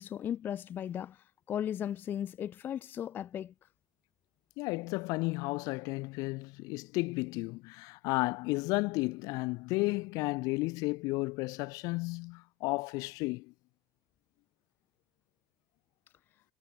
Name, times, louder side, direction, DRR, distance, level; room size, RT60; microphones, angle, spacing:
voice 1, 0.0-3.5, left 10 dB, 30° left, 0.3 m, -36 dB
voice 2, 4.6-13.5, left 24 dB, 65° left, 1.0 m, -33 dB
cardioid pair, 145°, 7 cm